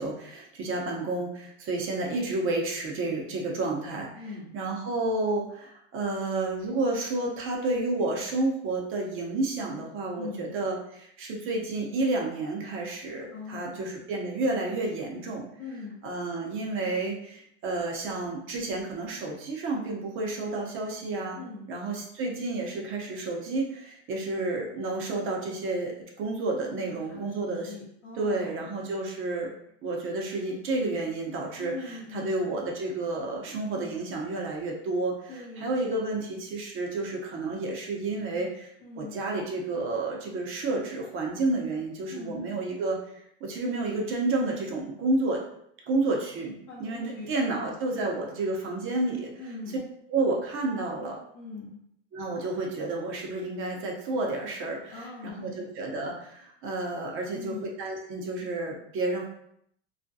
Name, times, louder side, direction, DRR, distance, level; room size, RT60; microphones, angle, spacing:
voice 1, 0.0-4.1 4.5-15.5 16.0-21.4 21.7-27.7 28.1-29.5 29.8-45.4 45.9-46.5 46.8-49.3 50.1-51.2 52.1-55.1 55.3-59.3, right 2 dB, 40° right, 0 dB, 0.7 m, -30 dB
voice 2, 4.2-4.5 10.1-10.5 13.3-13.8 15.6-16.0 21.3-21.7 26.7-28.7 31.6-32.5 35.3-35.8 38.8-39.2 42.1-42.4 46.7-48.3 49.4-49.8 51.3-51.8 54.9-55.7 57.3-57.7, left 4 dB, 45° left, -8 dB, 0.8 m, -42 dB
2.4 x 2.1 x 2.6 m, 0.72 s
supercardioid pair, 115°, 33 cm